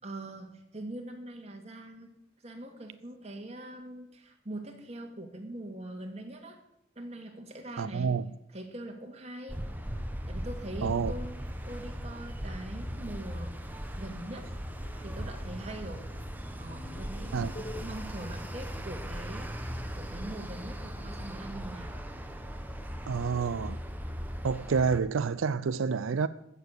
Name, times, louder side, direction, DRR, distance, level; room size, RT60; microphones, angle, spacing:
voice 1, 0.0-2.1 2.4-6.6 7.0-8.2 8.5-9.6 10.3-11.3 11.7-13.6 13.9-14.5 15.0-16.1 16.6-21.9, right 1 dB, 30° right, 2.0 m, -42 dB
voice 2, 7.8-8.3 10.8-11.1 17.3-17.5 23.1-23.8 24.4-26.3, right 5 dB, 85° right, 0.4 m, -28 dB
sound 1, 9.5-25.0, equal, 10° right, 1.0 m, -38 dB
sound 2, 12.6-17.8, left 2 dB, 45° left, 1.0 m, -51 dB
15.0 x 6.9 x 8.0 m
head